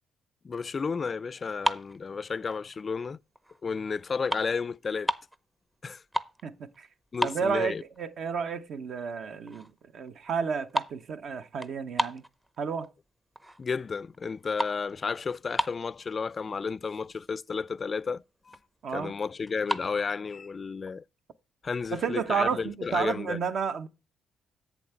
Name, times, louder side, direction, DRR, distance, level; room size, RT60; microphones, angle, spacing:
voice 1, 0.4-3.2 3.6-5.1 5.8-6.0 7.1-7.8 13.6-18.6 18.9-21.0 21.6-23.4, left 5 dB, 35° left, 0.3 m, -32 dB
sound 1, 1.5-2.9 3.4-3.6 3.9-5.4 5.8-6.5 6.7-6.8 7.1-8.0 8.4-8.5 9.1-9.2 9.5-9.8 10.1-12.9 13.4-13.8 14.1-16.1 16.7-16.8 17.0-17.3 17.7-17.8 18.0-18.7 19.5-19.9, right 1 dB, 10° right, 0.6 m, -33 dB
voice 2, 6.4-6.9 7.2-12.2 12.6-12.9 18.8-19.1 21.9-23.9, right 6 dB, 60° right, 0.8 m, -31 dB
8.1 x 7.1 x 4.4 m
cardioid pair, 90°, 0 cm